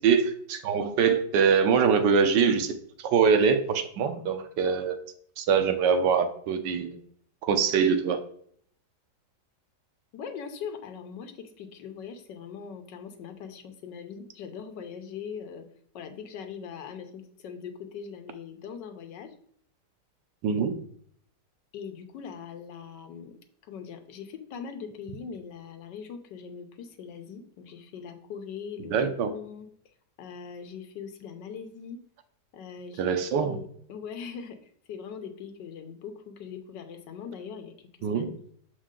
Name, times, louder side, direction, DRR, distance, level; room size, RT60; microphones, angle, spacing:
voice 1, 0.0-5.0 5.4-7.0 7.4-8.2 20.4-20.8 28.9-29.3 33.0-33.6 38.0-38.3, right 6 dB, 85° right, 8 dB, 1.4 m, -24 dB
voice 2, 10.1-15.7 15.9-19.3 21.7-23.3 23.7-29.7 30.2-32.0 32.5-38.4, left 6 dB, 90° left, 6 dB, 1.5 m, -41 dB
6.4 x 4.7 x 3.7 m, 0.63 s
omnidirectional pair, 1.8 m